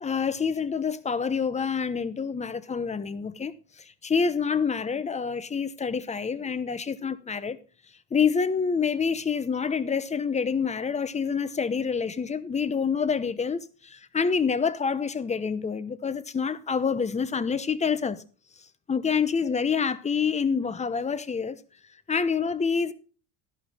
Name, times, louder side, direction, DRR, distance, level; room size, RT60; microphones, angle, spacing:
voice 1, 0.0-7.6 8.1-18.2 18.9-21.6 22.1-22.9, left 6 dB, 15° left, 0.8 m, -27 dB
12.5 x 11.5 x 3.5 m
supercardioid pair, 120°, 44 cm